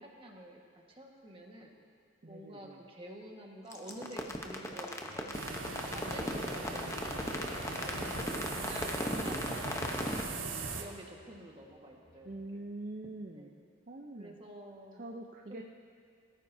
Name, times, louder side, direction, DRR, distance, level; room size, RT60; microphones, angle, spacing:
voice 1, 0.0-1.8 2.3-5.6 5.9-7.3 7.8-10.4 10.7-12.6 13.3-13.6 14.2-15.0 15.5-15.7, right 1 dB, 25° right, 0 dB, 1.5 m, -49 dB
voice 2, 2.2-2.8 6.7-8.6 12.2-14.4 14.9-15.6, right 2 dB, 40° right, 2 dB, 0.6 m, -46 dB
sound 1, 3.7-10.2, left 1 dB, 15° left, 0.8 m, -36 dB
sound 2, 3.9-12.6, left 1 dB, 55° left, 3.9 m, -63 dB
sound 3, 5.3-10.8, right 3 dB, 80° right, 1.2 m, -40 dB
21.5 x 14.0 x 2.7 m, 2.4 s
head